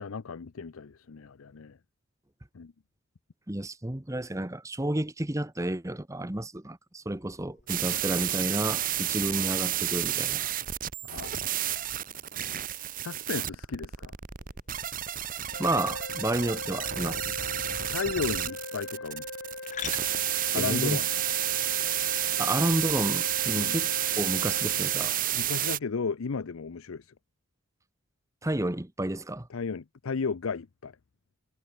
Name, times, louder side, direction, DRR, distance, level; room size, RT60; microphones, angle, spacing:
voice 1, 0.0-1.8 2.5-2.7 7.9-8.0 11.0-11.4 13.0-14.1 17.9-19.3 20.5-21.1 23.6-23.8 25.3-27.1 29.5-30.9, left 5 dB, 80° left, 0.6 m, -34 dB
voice 2, 3.5-10.4 15.6-17.3 20.5-21.0 22.4-23.9 24.2-25.1 28.4-29.5, right 1 dB, 15° right, 1.0 m, -31 dB
sound 1, 7.7-25.8, right 12 dB, 40° right, 1.1 m, -30 dB
sound 2, 10.9-22.2, left 8 dB, 35° left, 3.0 m, -49 dB
sound 3, 15.5-25.2, left 2 dB, 60° left, 5.4 m, -40 dB
head